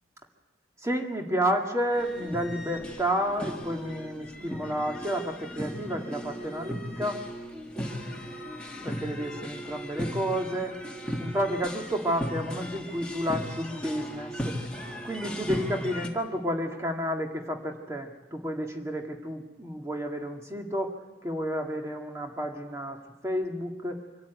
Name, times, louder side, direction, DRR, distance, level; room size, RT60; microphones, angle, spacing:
voice 1, 0.8-7.2 8.8-10.8 11.2-14.6 15.0-24.0, equal, 15° right, 2 dB, 2.0 m, -31 dB
sound 1, 1.9-16.1, equal, 5° left, 1.8 m, -37 dB
25.0 x 13.5 x 9.2 m, 1.2 s
head